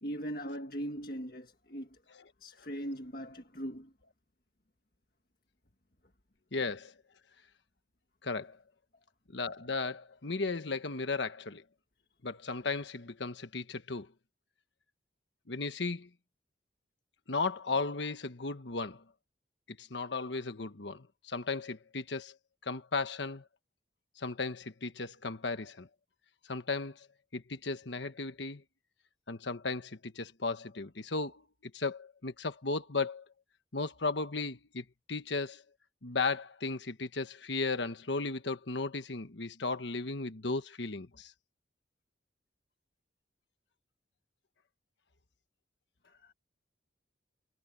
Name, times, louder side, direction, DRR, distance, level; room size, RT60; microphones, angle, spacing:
voice 1, 0.0-2.0 2.4-3.9 46.1-46.3, equal, 50° left, 1.7 m, -40 dB
voice 2, 6.5-6.9 8.2-8.6 9.3-11.6 12.2-14.1 15.5-16.1 17.3-19.0 19.7-22.4 22.6-23.4 24.2-25.9 26.5-27.1 27.3-28.6 29.3-33.2 33.7-35.6 36.0-41.3, left 3 dB, 75° left, 1.3 m, -35 dB
head